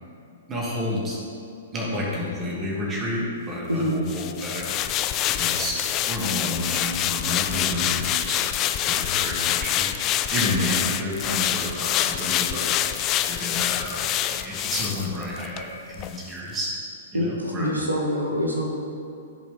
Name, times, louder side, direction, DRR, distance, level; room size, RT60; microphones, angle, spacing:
voice 1, 0.5-1.2 1.7-5.1 5.3-8.4 8.8-9.9 10.3-12.7 13.2-14.0 14.3-16.7 17.1-17.7, left 1 dB, 20° right, -4 dB, 2.2 m, -30 dB
sound 1, 4.1-15.7 16.0-16.2, left 12 dB, 30° left, 0.4 m, -26 dB
voice 2, 17.1-18.7, equal, 85° right, 0 dB, 1.2 m, -25 dB
14.5 x 5.2 x 3.7 m, 2.6 s
figure-of-eight pair, 110°, 0 cm